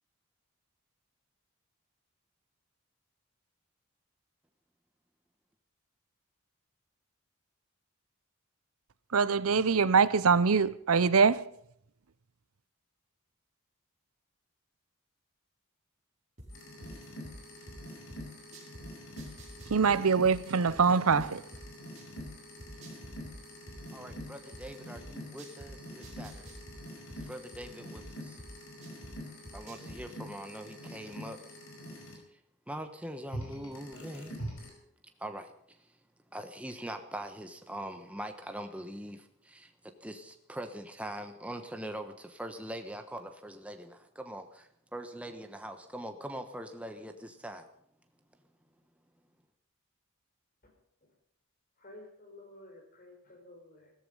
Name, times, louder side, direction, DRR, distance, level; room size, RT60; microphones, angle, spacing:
voice 1, 9.1-11.5 19.7-21.4, right 5 dB, 75° right, 0.7 m, -24 dB
sound 1, 16.4-18.8 19.2-22.3 22.6-25.7 26.0-29.1 29.4-30.0, right 1 dB, 30° right, 4.8 m, -49 dB
sound 2, 16.5-32.1 33.3-34.7, equal, 60° left, 5.0 m, -45 dB
voice 2, 23.9-26.5 27.2-28.4 29.5-31.4 32.7-34.3 35.2-35.9 36.3-39.7 40.0-47.7, right 1 dB, 5° right, 1.1 m, -42 dB
voice 3, 51.8-53.9, left 1 dB, 40° left, 4.9 m, -52 dB
16.0 x 14.0 x 5.5 m
head